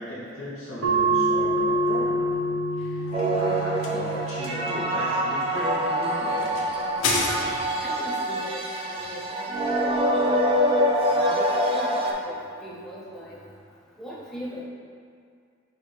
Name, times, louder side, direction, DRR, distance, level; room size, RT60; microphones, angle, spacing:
voice 1, 0.0-2.3 2.8-6.4, left 1 dB, 85° left, -12 dB, 1.2 m, -36 dB
sound 1, 0.8-5.9, right 2 dB, 65° right, 0.6 m, -27 dB
sound 2, 2.8-7.9, left 3 dB, 65° left, 0.6 m, -32 dB
sound 3, 3.1-12.1, equal, 30° right, 0.3 m, -25 dB
voice 2, 7.8-10.4 11.0-13.4 14.0-14.6, equal, ahead, -8 dB, 0.7 m, -39 dB
5.7 x 2.6 x 3.3 m, 2.2 s
head